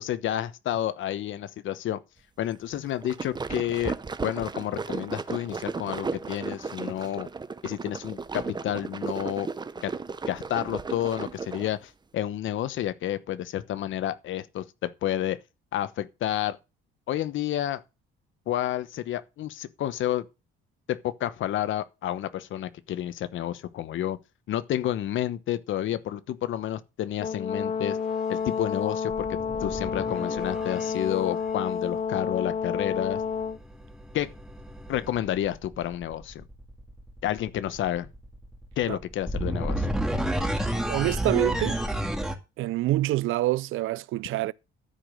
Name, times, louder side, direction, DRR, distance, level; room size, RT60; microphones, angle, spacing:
voice 1, 0.0-2.0 2.4-3.9 4.2-7.3 7.6-9.5 9.8-9.9 10.3-15.4 15.7-16.6 17.1-17.8 18.5-20.3 20.9-24.2 24.5-28.0 28.3-29.3 29.6-33.2 34.1-34.3 34.9-36.4 37.2-38.1 38.8-39.9, left 12 dB, 65° left, 1.0 m, -30 dB
sound 1, 2.8-11.8, right 4 dB, 20° right, 0.7 m, -35 dB
Brass instrument, 27.2-33.6, left 6 dB, 35° left, 0.6 m, -30 dB
sound 2, 27.6-27.9 29.1-31.2 33.0-42.3, right 1 dB, ahead, 1.9 m, -32 dB
voice 2, 40.9-41.8 42.6-44.5, right 16 dB, 75° right, 0.5 m, -26 dB
13.0 x 5.1 x 6.5 m
cardioid pair, 115°, 21 cm